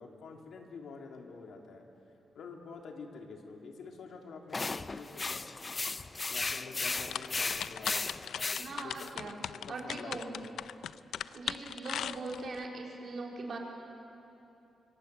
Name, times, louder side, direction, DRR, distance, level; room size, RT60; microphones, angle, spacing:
voice 1, 0.0-1.8 2.3-5.5 6.3-8.1 8.8-10.5, left 4 dB, 70° left, 2 dB, 2.8 m, -47 dB
sound 1, 4.5-9.1, left 3 dB, 25° left, 0.6 m, -35 dB
sound 2, 6.8-12.6, left 9 dB, 85° left, 0.5 m, -39 dB
voice 2, 8.5-9.4 9.7-10.3 11.3-13.6, right 3 dB, 50° right, 0 dB, 4.0 m, -41 dB
25.5 x 25.5 x 8.1 m, 2.9 s
wide cardioid pair, 165°, 0 cm